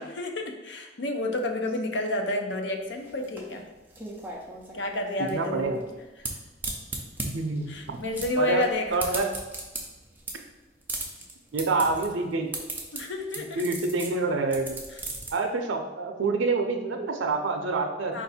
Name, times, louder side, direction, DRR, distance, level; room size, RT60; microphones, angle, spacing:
voice 1, 0.0-3.7 4.7-5.8 6.2-6.3 7.7-9.0 12.9-13.6 18.1-18.2, left 2 dB, 65° left, 4 dB, 0.6 m, -30 dB
sound 1, 2.8-15.3, right 2 dB, 10° right, 0.5 m, -37 dB
voice 2, 5.3-5.8 7.2-8.0 8.4-9.3 11.5-12.5 13.6-14.8 15.3-18.2, right 3 dB, 85° right, 4 dB, 0.5 m, -27 dB
4.3 x 2.6 x 4.0 m, 1.1 s
head